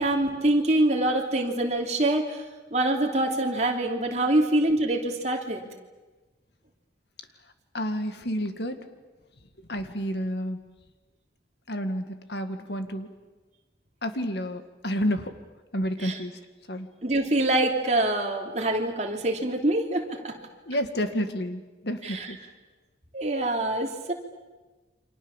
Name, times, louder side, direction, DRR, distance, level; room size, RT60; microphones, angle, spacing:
voice 1, 0.0-2.4 2.7-5.6 16.0-16.1 17.0-20.3 22.0-22.3 23.1-24.1, right 1 dB, 35° right, 1 dB, 3.2 m, -25 dB
voice 2, 7.7-8.8 9.7-10.7 11.7-13.1 14.0-15.3 15.7-16.4 16.7-16.9 20.7-22.4, equal, 65° left, 8 dB, 2.0 m, -30 dB
29.0 x 26.0 x 7.3 m, 1.2 s
head